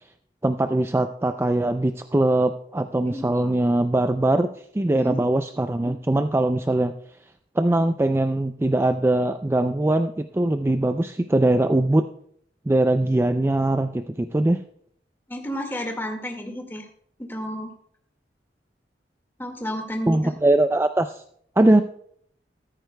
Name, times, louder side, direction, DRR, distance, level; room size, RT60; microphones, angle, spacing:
voice 1, 0.4-4.5 4.7-6.9 7.6-12.0 12.7-14.6 20.1-21.2 21.6-21.8, right 1 dB, 15° right, 9 dB, 0.3 m, -21 dB
voice 2, 15.3-16.9 17.2-17.7 19.4-20.3, equal, 15° left, 3 dB, 1.8 m, -31 dB
14.0 x 14.0 x 2.2 m, 0.65 s
head